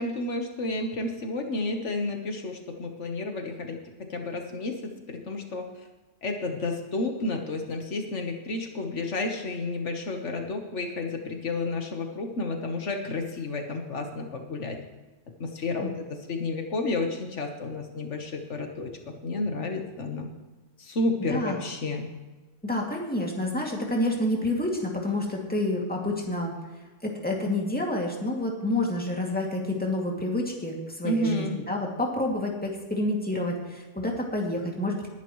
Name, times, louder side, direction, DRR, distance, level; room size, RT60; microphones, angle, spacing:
voice 1, 0.0-5.7 6.2-14.8 15.4-20.3 20.8-22.1 31.0-31.6, left 2 dB, 75° left, 4 dB, 1.6 m, -31 dB
voice 2, 22.6-26.5 27.0-35.1, left 1 dB, 5° left, -1 dB, 2.4 m, -28 dB
20.5 x 10.5 x 3.2 m, 1.2 s
omnidirectional pair, 1.2 m